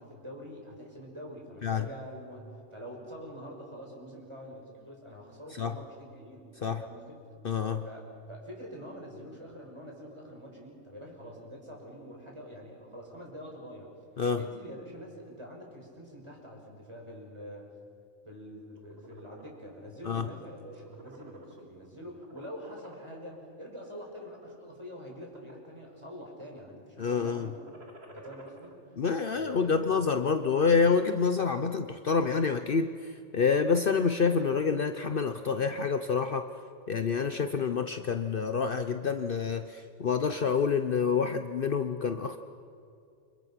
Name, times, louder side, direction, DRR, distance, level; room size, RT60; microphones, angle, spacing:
voice 1, 0.0-7.2 7.8-13.9 14.3-17.7 18.2-27.6 28.0-28.8 29.3-30.0, equal, 25° right, -1 dB, 6.1 m, -45 dB
voice 2, 7.4-7.8 14.2-14.4 20.1-20.2 27.0-27.5 29.0-36.5 36.9-42.4, left 5 dB, 50° left, 8 dB, 1.0 m, -27 dB
sound 1, 18.6-19.6 20.1-20.3 20.6-21.9 22.2-23.3 24.0-24.4 25.0-25.8 26.1-26.6 27.5-28.7, right 2 dB, 60° right, 2.8 m, -51 dB
29.5 x 26.0 x 5.9 m, 2.5 s
omnidirectional pair, 1.2 m